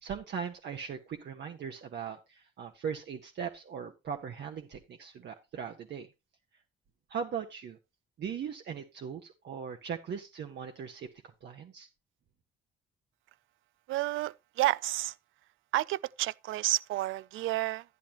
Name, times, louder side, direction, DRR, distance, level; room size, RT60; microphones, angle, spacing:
voice 1, 0.0-6.1 7.1-7.8 8.2-11.1 11.4-11.9, right 7 dB, 60° right, 1.2 m, -39 dB
voice 2, 13.9-15.1 15.7-17.8, right 16 dB, 80° right, 0.4 m, -30 dB
11.0 x 10.5 x 3.0 m
cardioid pair, 90°, 20 cm